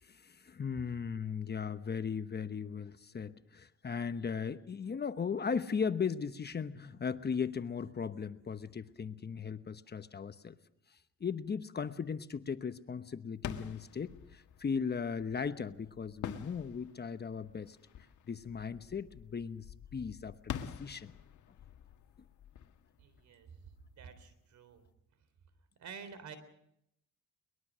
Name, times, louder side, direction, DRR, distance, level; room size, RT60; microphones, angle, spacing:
voice 1, 0.0-10.6 10.9-17.8 18.3-19.7 19.9-21.1, left 6 dB, 35° left, 11 dB, 1.0 m, -37 dB
sound 1, 13.3-23.9, left 9 dB, 75° left, 1.7 m, -47 dB
voice 2, 23.0-23.5 24.0-24.8 25.8-26.4, right 6 dB, 70° right, 13 dB, 3.7 m, -49 dB
22.5 x 21.0 x 6.3 m, 0.78 s
cardioid pair, 90°, 30 cm